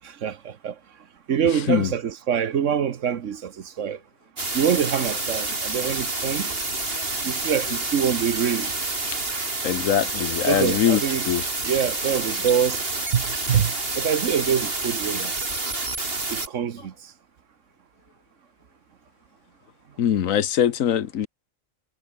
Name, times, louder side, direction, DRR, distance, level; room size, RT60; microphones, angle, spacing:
voice 1, 0.0-0.8 1.3-4.0 4.5-6.5 7.2-8.7 10.5-11.3 11.6-15.3 16.3-17.1, right 8 dB, 70° right, 1.3 m, -25 dB
sound 1, 4.4-16.5, right 2 dB, 45° right, 3.5 m, -28 dB
voice 2, 9.6-11.0 11.3-11.4 20.0-21.3, left 9 dB, 80° left, 1.3 m, -22 dB
omnidirectional pair, 1.4 m